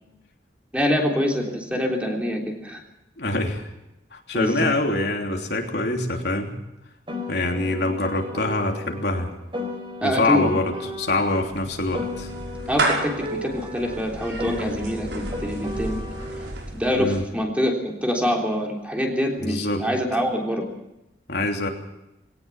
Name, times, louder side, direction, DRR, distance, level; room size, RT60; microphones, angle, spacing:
voice 1, 0.7-2.8 4.3-4.7 10.0-10.6 12.7-16.0 16.7-20.6, equal, 5° right, 1 dB, 3.5 m, -25 dB
voice 2, 3.2-3.7 4.1-6.6 7.3-9.3 10.0-12.3 17.0-17.2 19.4-19.9 21.3-21.7, left 2 dB, 65° left, 2 dB, 3.2 m, -25 dB
Piano, 7.1-11.5 11.9-16.5, left 2 dB, 30° right, 4.2 m, -35 dB
Clapping / Meow, 10.9-17.3, right 2 dB, 80° right, 5.7 m, -32 dB
21.5 x 18.0 x 7.2 m, 0.90 s
head